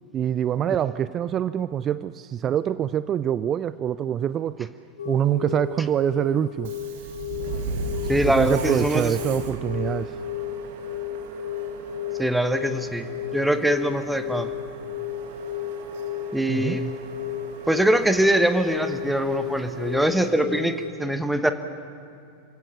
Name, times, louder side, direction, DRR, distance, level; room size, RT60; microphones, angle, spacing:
voice 1, 0.1-4.7 5.0-6.7 8.3-10.1 16.5-16.8, right 10 dB, 30° right, 16 dB, 0.4 m, -25 dB
sound 1, 5.0-20.9, left 9 dB, 65° left, 1.5 m, -33 dB
Subway metro underground, 6.6-20.1, right 4 dB, 50° right, 1.9 m, -37 dB
voice 2, 8.1-9.1 12.2-13.1 13.3-14.5 16.3-16.9 17.7-20.7 21.0-21.5, right 1 dB, 5° right, 9 dB, 1.1 m, -23 dB
27.0 x 16.5 x 6.8 m, 2.5 s
figure-of-eight pair, 90°, 0 cm